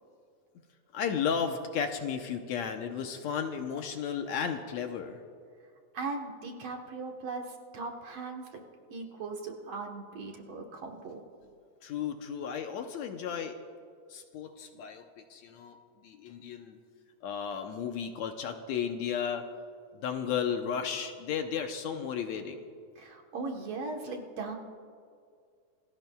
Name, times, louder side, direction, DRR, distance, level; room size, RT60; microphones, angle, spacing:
voice 1, 0.9-5.2 11.8-13.6 14.1-16.8 17.2-19.5 19.9-22.6, left 7 dB, 70° left, 5 dB, 1.9 m, -34 dB
voice 2, 5.9-8.6 8.9-11.2 23.0-24.6, right 3 dB, 60° right, 2 dB, 2.1 m, -38 dB
27.0 x 19.5 x 2.3 m, 2.3 s
omnidirectional pair, 3.6 m